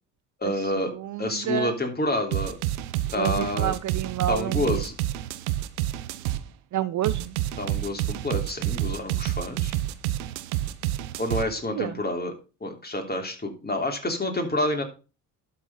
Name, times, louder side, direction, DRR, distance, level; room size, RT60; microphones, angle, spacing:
voice 1, 0.4-0.9 1.2-2.5 3.1-3.7 4.3-4.9 7.6-9.8 11.2-12.3 12.6-14.8, left 1 dB, 20° left, 3 dB, 3.1 m, -28 dB
voice 2, 1.0-1.7 3.2-4.8 6.7-7.3 11.8-11.9, right 12 dB, 45° right, 14 dB, 0.6 m, -29 dB
sound 1, 2.3-6.4 7.0-11.5, right 14 dB, 80° right, 0.8 m, -28 dB
12.0 x 4.3 x 5.4 m, 0.33 s
hypercardioid pair, 55°, 43 cm